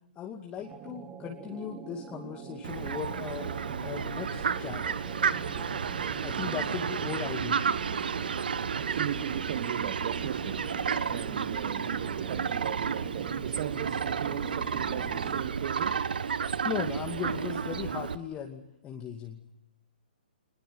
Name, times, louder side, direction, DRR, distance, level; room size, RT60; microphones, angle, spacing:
voice 1, 0.2-3.5 3.8-4.9 6.2-7.7 16.6-19.4, left 8 dB, 20° left, 2.4 m, -37 dB
sound 1, 0.6-15.7, right 7 dB, 20° right, 1.9 m, -44 dB
Fowl, 2.6-18.1, right 6 dB, 65° right, 1.3 m, -32 dB
voice 2, 8.7-10.7 11.1-16.0, right 11 dB, 45° right, 1.5 m, -37 dB
25.0 x 21.0 x 9.4 m
figure-of-eight pair, 125°, 5 cm